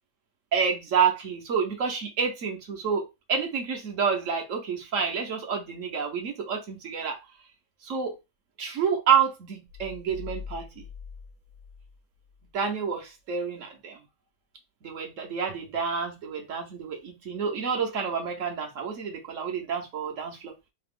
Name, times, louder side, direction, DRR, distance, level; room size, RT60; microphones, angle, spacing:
voice 1, 0.5-7.2 7.8-8.2 8.6-10.8 12.5-14.0 14.8-20.5, right 6 dB, 60° right, 2 dB, 1.1 m, -28 dB
sound 1, 9.7-12.5, left 6 dB, 35° right, 0.6 m, -43 dB
3.3 x 2.8 x 3.5 m, 0.24 s
omnidirectional pair, 1.6 m